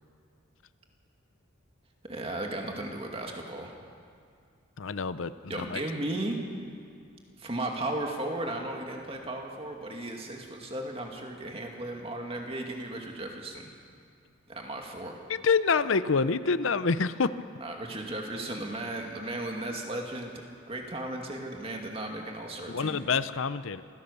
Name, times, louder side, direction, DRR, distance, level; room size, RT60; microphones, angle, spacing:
voice 1, 2.1-3.7 5.5-6.4 7.4-13.7 14.5-15.2 17.6-20.3 20.7-23.0, right 1 dB, 30° right, 1 dB, 2.3 m, -35 dB
voice 2, 4.8-5.8 15.3-17.3 22.7-23.8, left 5 dB, 70° left, 14 dB, 0.6 m, -27 dB
26.5 x 16.0 x 6.9 m, 2.3 s
head